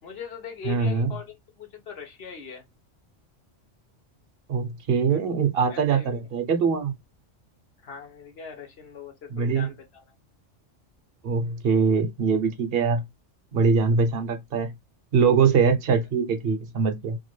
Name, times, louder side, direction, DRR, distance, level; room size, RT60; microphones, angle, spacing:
voice 1, 0.0-2.6 5.1-5.2 5.7-6.3 7.8-10.0, left 6 dB, 60° left, 1.1 m, -41 dB
voice 2, 0.6-1.1 4.5-6.9 9.3-9.7 11.2-13.0 13.5-14.7 15.1-17.2, right 5 dB, 55° right, 0.8 m, -23 dB
2.8 x 2.5 x 3.0 m
omnidirectional pair, 1.2 m